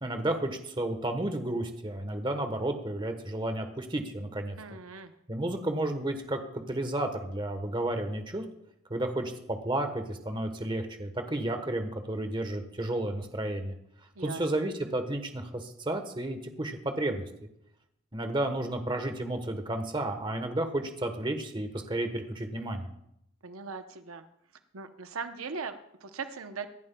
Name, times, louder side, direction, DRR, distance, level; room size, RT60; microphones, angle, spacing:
voice 1, 0.0-4.6 5.3-8.4 8.9-13.8 14.2-17.2 18.1-22.9, right 1 dB, 25° right, 6 dB, 1.1 m, -32 dB
voice 2, 4.6-5.1 14.1-14.4 23.4-24.2 24.7-26.7, right 5 dB, 90° right, 8 dB, 0.8 m, -39 dB
24.5 x 10.5 x 2.3 m, 0.77 s
head